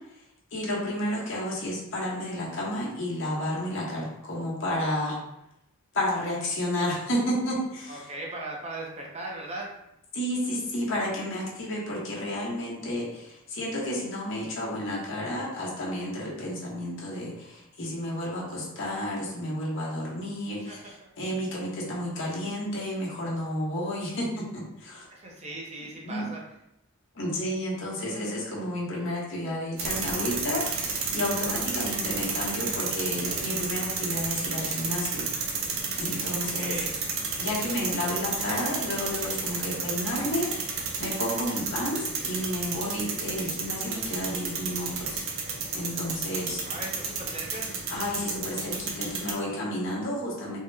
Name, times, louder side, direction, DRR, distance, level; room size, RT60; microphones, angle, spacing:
voice 1, 0.5-5.2 5.9-8.1 10.1-25.1 25.8-26.3 27.1-35.3 36.0-36.8 37.4-46.6 47.9-50.6, left 1 dB, 65° left, -4 dB, 1.0 m, -31 dB
voice 2, 7.9-9.7 20.7-20.8 25.1-26.4 36.4-36.9 46.6-47.7, right 2 dB, 30° right, -2 dB, 0.6 m, -38 dB
sound 1, 29.8-49.3, right 4 dB, 70° right, 0.6 m, -32 dB
3.6 x 2.1 x 3.3 m, 0.81 s
head